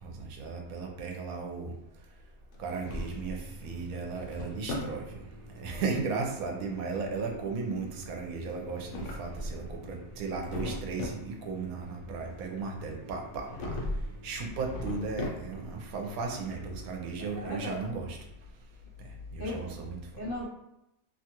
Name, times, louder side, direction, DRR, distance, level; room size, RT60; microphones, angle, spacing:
voice 1, 0.0-1.7 2.6-5.2 5.6-13.7 14.2-18.2 19.3-20.0, right 4 dB, 75° right, 2 dB, 1.0 m, -35 dB
Drawer open or close, 2.5-3.5 3.9-5.0 8.6-9.8 10.1-11.3 13.4-14.1 14.5-15.7, left 1 dB, 75° left, 1.0 m, -37 dB
sound 1, 3.4-17.4, right 1 dB, 55° right, 0.6 m, -52 dB
voice 2, 17.2-17.8 19.4-19.8 20.2-20.5, left 1 dB, 55° left, -6 dB, 0.7 m, -37 dB
2.7 x 2.3 x 2.8 m, 0.84 s
omnidirectional pair, 1.5 m